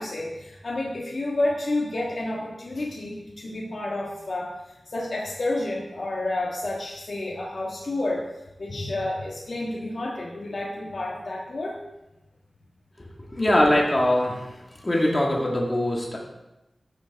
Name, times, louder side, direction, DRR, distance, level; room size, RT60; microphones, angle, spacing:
voice 1, 0.0-4.5 4.9-8.3 8.6-11.8, left 2 dB, 60° left, -4 dB, 1.7 m, -30 dB
voice 2, 13.3-14.4 14.8-16.2, left 1 dB, 25° left, -2 dB, 1.9 m, -22 dB
14.0 x 7.0 x 3.6 m, 0.96 s
wide cardioid pair, 100°, 0 cm